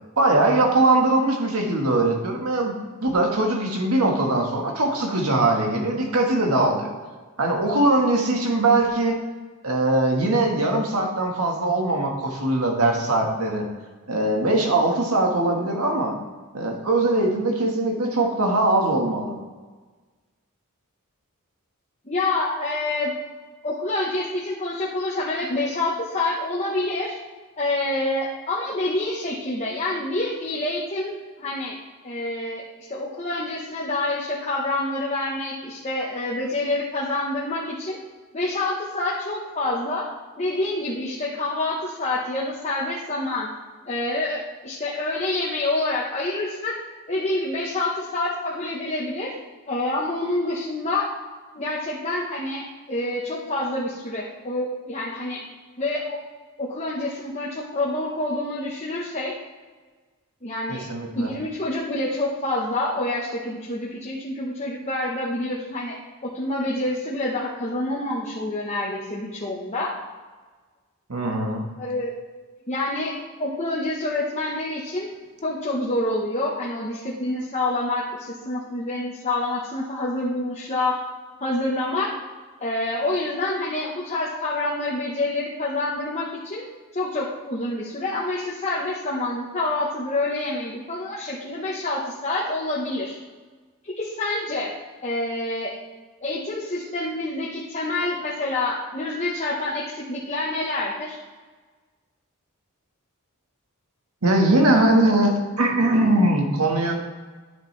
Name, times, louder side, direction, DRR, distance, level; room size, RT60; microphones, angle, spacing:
voice 1, 0.2-2.8 3.0-6.9 7.4-9.2 9.6-13.6 14.1-16.2 16.5-19.3 60.7-61.3 71.1-71.6 104.2-106.9, right 2 dB, 80° right, 1 dB, 1.6 m, -21 dB
voice 2, 22.1-23.1 23.6-27.2 27.6-31.8 32.0-32.6 32.9-38.0 38.3-40.0 40.4-43.5 43.9-46.7 47.1-49.3 49.7-51.1 51.5-55.4 55.8-56.2 56.6-59.3 60.4-60.9 61.1-65.9 66.2-69.9 71.8-72.1 72.7-73.1 73.4-75.1 75.4-80.9 81.4-82.1 82.6-86.6 86.9-93.2 94.0-94.7 95.0-95.8 96.2-101.2, left 2 dB, 30° left, -6 dB, 1.1 m, -27 dB
10.0 x 7.6 x 3.3 m, 1.4 s
head